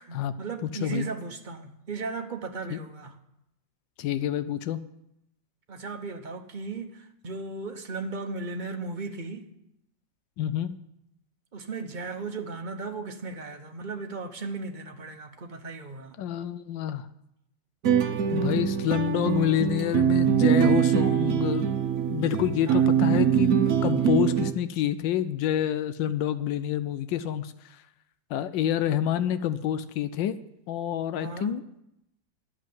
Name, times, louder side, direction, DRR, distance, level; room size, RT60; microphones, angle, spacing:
voice 1, 0.0-3.2 5.7-9.5 11.5-16.1 22.7-22.9 31.2-31.6, right 4 dB, 35° right, 0.8 m, -36 dB
voice 2, 0.6-1.1 2.7-2.8 4.0-4.8 10.4-10.8 16.2-17.1 18.3-21.7 22.1-23.6 23.8-27.8 28.3-30.3 30.7-31.8, left 11 dB, 90° left, 1.3 m, -28 dB
sound 1, 17.8-24.5, right 8 dB, 55° right, 1.1 m, -23 dB
11.0 x 7.5 x 9.2 m
omnidirectional pair, 1.9 m